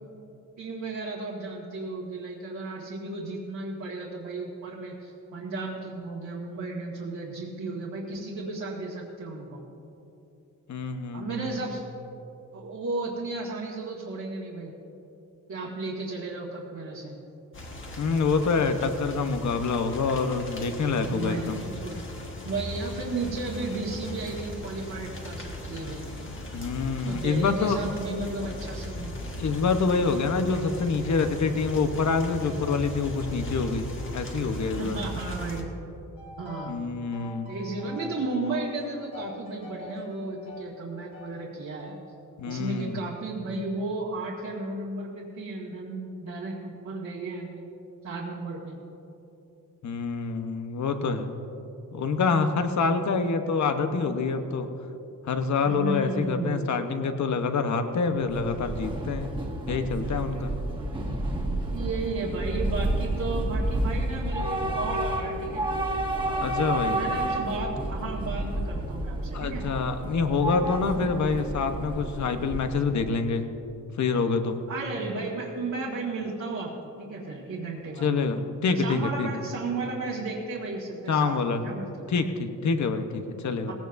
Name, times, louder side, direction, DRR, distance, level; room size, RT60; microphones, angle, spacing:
voice 1, 0.6-9.6 11.1-11.8 12.5-14.7 15.5-17.2 21.0-22.0 22.4-26.0 27.1-29.2 34.8-35.7 36.4-36.8 37.5-41.9 42.5-47.6 48.0-48.8 55.6-56.7 61.7-65.7 66.8-69.6 74.7-76.7 77.0-78.1 78.8-82.1 83.7-83.8, right 3 dB, 60° right, -5 dB, 1.8 m, -34 dB
voice 2, 10.7-11.5 18.0-21.6 26.5-27.8 29.4-35.0 36.6-37.5 42.4-43.0 49.8-51.4 51.9-54.7 55.2-59.3 59.7-60.5 66.4-67.0 69.3-73.4 74.0-74.6 78.0-79.4 81.1-81.6 82.1-83.7, left 4 dB, 60° left, 7 dB, 1.0 m, -26 dB
sound 1, 17.5-35.6, left 1 dB, 40° left, 1.6 m, -38 dB
sound 2, 36.2-36.8 37.1-41.4 41.8-42.0 42.5-43.0, left 2 dB, 75° left, 3.5 m, -43 dB
Train / Subway metro underground, 58.2-73.0, right 1 dB, 15° right, 1.7 m, -30 dB
19.5 x 16.5 x 2.6 m, 2.9 s
wide cardioid pair, 145°, 33 cm